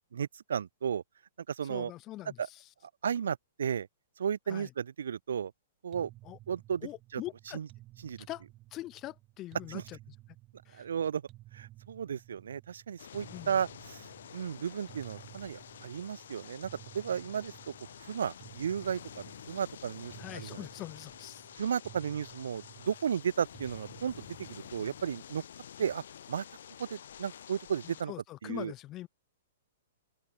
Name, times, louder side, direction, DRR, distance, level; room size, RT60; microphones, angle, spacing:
voice 1, 0.1-1.0 1.5-1.9 2.4-2.5 3.0-3.9 4.2-5.5 5.8-6.1 6.5-7.2 7.5-7.7 8.0-8.3 9.7-9.8 10.7-11.2 11.5-14.1 14.3-16.7 16.9-17.7 18.0-20.7 21.6-25.4 25.8-26.4 26.8-28.1 28.4-28.7, right 8 dB, 75° right, 0.3 m, -34 dB
voice 2, 1.6-2.4 4.5-4.7 6.2-6.4 6.8-7.6 8.3-8.4 8.7-10.0 10.7-10.8 13.3-13.6 20.2-21.4 27.8-29.1, left 15 dB, 30° left, 1.0 m, -43 dB
sound 1, 5.9-25.2, right 16 dB, 35° right, 4.7 m, -55 dB
sound 2, 13.0-28.0, left 9 dB, 70° left, 3.2 m, -49 dB
open air
hypercardioid pair, 120°, 0 cm